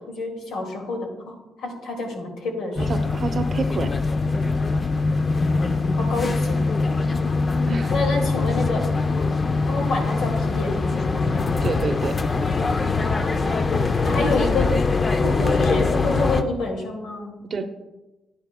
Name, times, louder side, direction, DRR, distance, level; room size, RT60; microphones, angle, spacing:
voice 1, 0.1-3.2 6.0-7.1 7.9-8.9 9.7-11.5 14.0-14.8 15.2-17.3, left 2 dB, 80° left, 1 dB, 2.1 m, -28 dB
sound 1, 2.8-16.4, left 3 dB, 35° left, 0.5 m, -22 dB
voice 2, 2.9-3.9 7.7-7.9 11.6-12.2 14.4-14.5 17.5-17.7, right 4 dB, 50° right, 8 dB, 0.8 m, -28 dB
10.5 x 9.7 x 2.2 m, 1.1 s
cardioid pair, 90°, 0 cm